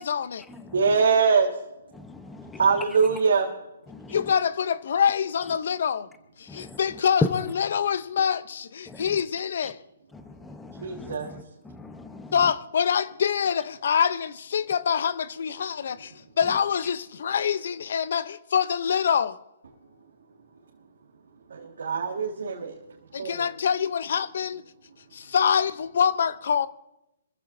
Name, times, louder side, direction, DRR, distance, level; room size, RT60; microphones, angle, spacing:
voice 1, 0.0-0.4 4.1-6.1 6.4-9.8 12.3-19.4 23.1-24.6 25.1-26.7, left 7 dB, 65° left, 0.7 m, -25 dB
voice 2, 0.7-1.5 2.6-3.5 10.8-11.3 21.5-22.8 23.2-23.4, right 5 dB, 75° right, 1.9 m, -23 dB
voice 3, 1.9-2.6 3.9-4.2 6.5-6.8 8.9-9.0 10.1-12.3, left 3 dB, 10° left, 1.0 m, -44 dB
27.5 x 15.0 x 2.7 m
hypercardioid pair, 140°, 0 cm